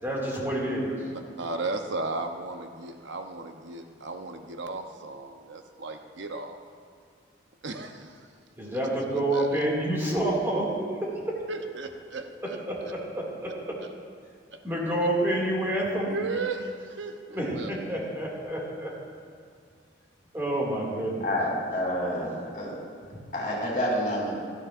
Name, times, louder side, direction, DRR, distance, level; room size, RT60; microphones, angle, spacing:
voice 1, 0.0-0.9 8.6-10.7 11.0-11.4 12.7-13.8 14.6-16.1 17.3-18.9 20.3-21.3, right 1 dB, 15° right, -4 dB, 2.3 m, -28 dB
voice 2, 1.0-6.6 7.6-8.2 9.1-9.6 11.5-12.6 14.5-15.1 16.1-17.7, right 3 dB, 80° right, 5 dB, 0.8 m, -35 dB
voice 3, 21.2-22.7 23.3-24.3, equal, 45° left, -3 dB, 3.3 m, -28 dB
16.5 x 13.0 x 2.5 m, 2.3 s
head